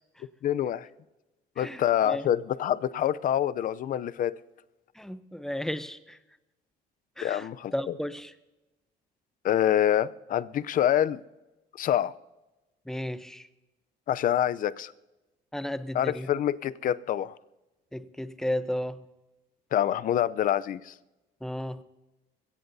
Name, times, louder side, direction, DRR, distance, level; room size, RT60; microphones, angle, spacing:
voice 1, 0.4-0.9 1.6-4.3 7.2-8.0 9.4-11.2 11.7-12.1 14.1-14.9 15.9-17.4 19.7-20.9, left 11 dB, 55° left, 0.6 m, -26 dB
voice 2, 1.6-2.3 5.0-6.2 7.2-8.3 12.9-13.5 15.5-16.3 17.9-19.0 21.4-21.8, left 1 dB, 5° left, 0.8 m, -34 dB
22.5 x 17.0 x 2.7 m
cardioid pair, 110°, 17 cm